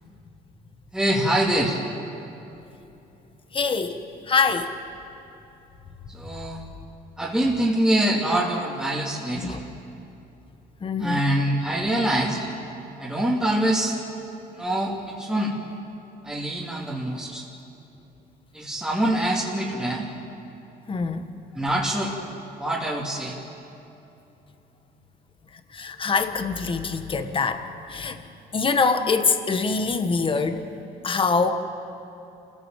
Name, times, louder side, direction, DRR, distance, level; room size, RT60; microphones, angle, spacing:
voice 1, 0.9-1.8 6.1-6.6 7.2-9.6 11.0-12.5 13.0-14.0 14.5-15.5 16.2-17.5 18.5-20.1 21.5-22.1 22.6-23.4, right 1 dB, 5° right, -4 dB, 2.7 m, -24 dB
voice 2, 3.5-4.7 9.4-9.6 10.8-11.2 20.9-21.3 25.7-28.2 28.5-30.6 31.0-31.5, left 4 dB, 30° left, 8 dB, 1.6 m, -24 dB
28.0 x 16.0 x 7.6 m, 2.9 s
cardioid pair, 110°, 17 cm